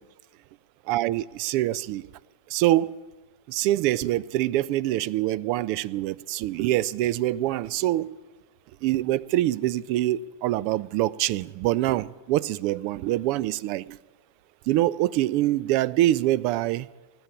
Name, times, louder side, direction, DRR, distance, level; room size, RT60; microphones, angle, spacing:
voice 1, 0.9-2.0 2.5-2.9 3.5-8.1 8.8-13.8 14.7-16.9, right 15 dB, 45° right, 0.4 m, -25 dB
19.0 x 8.7 x 7.0 m
figure-of-eight pair, 90°, 0 cm